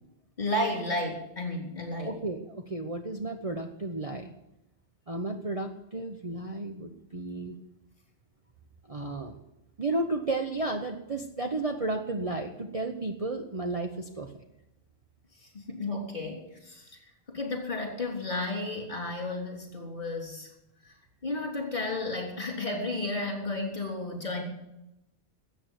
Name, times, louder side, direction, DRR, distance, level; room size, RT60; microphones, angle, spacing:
voice 1, 0.4-2.2 15.4-17.0 17.3-20.5 20.8-20.9 21.2-24.4, left 2 dB, 40° left, 1 dB, 3.6 m, -33 dB
voice 2, 2.0-4.3 5.1-7.6 8.9-9.4 9.8-14.3, right 2 dB, 30° right, 4 dB, 0.9 m, -33 dB
13.5 x 8.3 x 9.3 m, 0.89 s
omnidirectional pair, 1.2 m